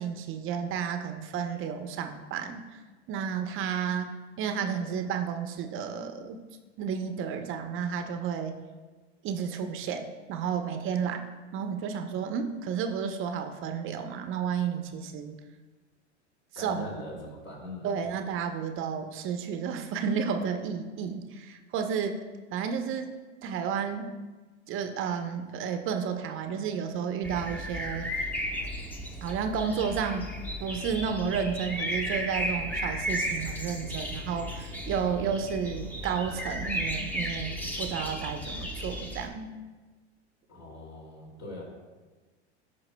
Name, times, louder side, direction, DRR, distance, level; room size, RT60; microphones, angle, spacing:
voice 1, 0.0-2.8 3.1-4.1 4.4-6.4 6.8-8.6 9.2-11.2 11.5-15.3 16.6-16.8 17.8-22.2 22.5-23.1 23.4-24.1 24.7-28.1 29.2-30.3 30.6-39.6, right 7 dB, 40° right, 6 dB, 0.7 m, -32 dB
voice 2, 16.6-18.2 40.5-41.6, left 1 dB, 50° left, -3 dB, 2.5 m, -41 dB
sound 1, 27.2-39.3, equal, 5° left, 0.9 m, -34 dB
14.0 x 5.6 x 2.2 m, 1.3 s
hypercardioid pair, 95°, 34 cm